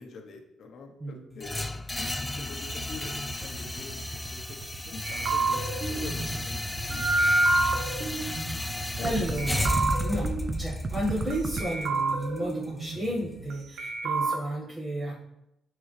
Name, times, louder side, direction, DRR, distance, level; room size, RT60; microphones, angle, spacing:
voice 1, 0.0-6.6 6.9-7.0 9.0-9.6, left 4 dB, 65° left, 3 dB, 1.0 m, -44 dB
sound 1, 1.4-13.4, left 1 dB, 10° left, 0.3 m, -34 dB
sound 2, 2.6-11.6, right 3 dB, 45° right, 0.6 m, -36 dB
sound 3, 5.0-9.0 9.4-11.3 11.6-13.5 13.8-14.4, right 2 dB, 80° right, 0.8 m, -29 dB
voice 2, 8.6-15.2, right 1 dB, 25° right, -7 dB, 1.6 m, -33 dB
9.5 x 3.9 x 3.3 m, 0.85 s
cardioid pair, 90°, 0 cm